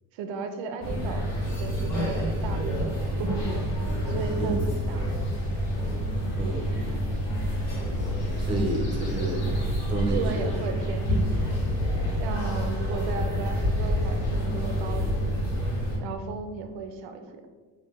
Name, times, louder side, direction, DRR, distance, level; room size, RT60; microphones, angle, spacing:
voice 1, 0.1-1.3 1.6-3.7 4.1-5.1 10.1-11.6 12.2-15.1 16.0-17.4, right 4 dB, 85° right, 6 dB, 0.5 m, -35 dB
sound 1, 0.8-16.0, equal, 40° left, 1.4 m, -28 dB
sound 2, 3.3-15.0, left 1 dB, 55° left, 1.0 m, -49 dB
voice 2, 6.3-6.8 8.4-9.6 9.9-10.5 12.9-13.3, right 2 dB, 15° right, 0 dB, 0.3 m, -30 dB
5.6 x 2.2 x 2.3 m, 1.4 s
cardioid pair, 165°, 43 cm